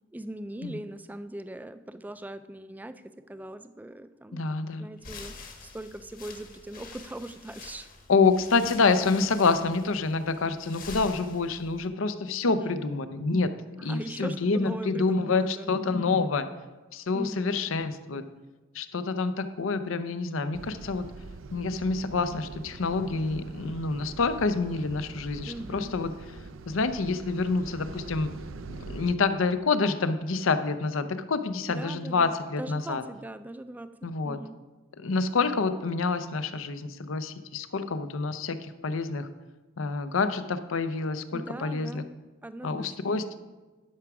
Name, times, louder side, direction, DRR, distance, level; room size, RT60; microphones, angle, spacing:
voice 1, 0.1-4.4 4.8-7.9 12.4-12.8 13.8-15.7 17.1-17.6 25.5-25.9 31.7-34.0 34.2-34.6 41.3-42.2 42.4-42.9, right 1 dB, 10° right, 12 dB, 0.3 m, -40 dB
voice 2, 4.3-4.9 8.1-13.5 13.8-16.5 16.9-18.2 18.7-21.1 21.5-26.1 26.7-28.3 28.8-33.0 34.0-34.4 35.0-39.3 39.8-42.0 42.6-43.2, left 4 dB, 85° left, 11 dB, 0.6 m, -27 dB
sound 1, 5.0-11.9, left 4 dB, 45° left, 1.2 m, -46 dB
sound 2, 20.5-29.1, right 3 dB, 80° right, 0.5 m, -43 dB
11.5 x 4.8 x 5.9 m, 1.2 s
head